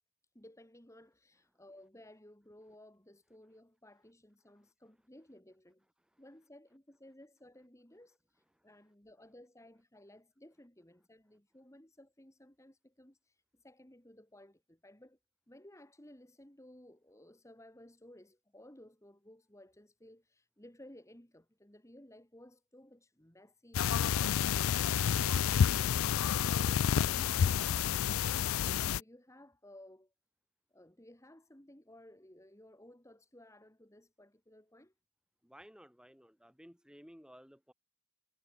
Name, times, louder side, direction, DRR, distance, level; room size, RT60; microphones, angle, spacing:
voice 1, 0.3-5.9 6.2-15.2 15.5-24.5 24.8-30.1 30.7-34.9, left 1 dB, 15° left, 1.9 m, -58 dB
sound 1, 23.7-29.0, left 8 dB, 70° left, 0.4 m, -29 dB
voice 2, 35.4-37.7, equal, 5° right, 4.9 m, -56 dB
head